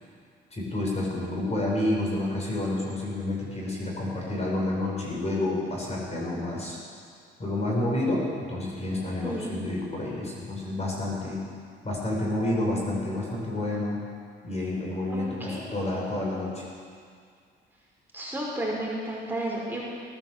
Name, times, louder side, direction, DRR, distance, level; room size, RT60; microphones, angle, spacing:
voice 1, 0.5-6.8 7.4-11.4 11.8-14.0 14.4-16.6, left 1 dB, 35° left, -3 dB, 5.2 m, -29 dB
voice 2, 9.2-9.6 15.1-15.8 18.1-19.8, right 1 dB, 10° right, -5 dB, 5.2 m, -32 dB
18.0 x 10.5 x 7.5 m, 2.2 s
cardioid pair, 90°, 20 cm